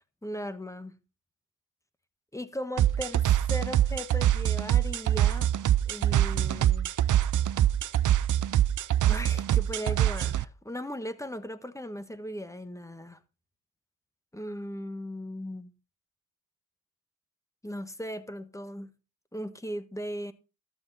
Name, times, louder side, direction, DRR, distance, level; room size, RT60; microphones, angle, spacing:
voice 1, 0.2-0.9 2.3-5.5 5.9-6.9 9.1-13.2 14.3-15.7 17.6-18.9 19.3-20.3, equal, 5° left, 1.3 m, -37 dB
sound 1, 2.8-10.4, right 11 dB, 50° right, 0.6 m, -24 dB
13.0 x 8.0 x 4.1 m
cardioid pair, 70°, 40 cm